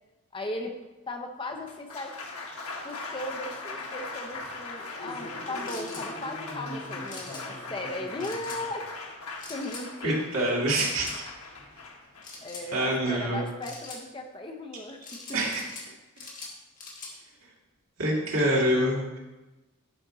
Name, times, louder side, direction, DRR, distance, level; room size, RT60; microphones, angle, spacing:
voice 1, 0.3-0.7 1.1-2.2 2.6-8.9 9.5-10.2 12.4-15.0, left 1 dB, 20° left, 4 dB, 0.7 m, -37 dB
Applause, 1.5-13.7, left 2 dB, 90° left, 1.3 m, -39 dB
sound 1, 5.7-6.1 7.1-7.4 8.2-8.6 9.4-9.9 10.8-11.2 12.2-12.7 13.6-14.0 15.0-15.9 16.2-17.1, left 3 dB, 40° left, 1.6 m, -42 dB
voice 2, 10.0-11.1 12.7-13.4 15.3-15.6 18.0-19.2, right 1 dB, 75° right, -4 dB, 2.3 m, -25 dB
11.0 x 5.2 x 3.8 m, 1.1 s
head